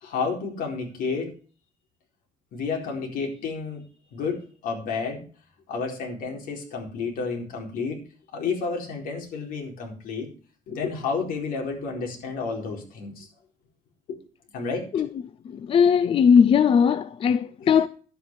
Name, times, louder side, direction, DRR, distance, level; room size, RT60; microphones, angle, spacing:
voice 1, 0.0-1.3 2.5-3.8 4.1-5.2 5.7-8.0 8.3-10.3 10.7-13.3 14.1-14.2 14.5-15.1 17.6-17.7, left 4 dB, 70° left, 4.3 m, -31 dB
voice 2, 15.7-17.9, left 7 dB, 35° left, 0.5 m, -18 dB
11.5 x 8.6 x 4.8 m
cardioid pair, 155°, 15 cm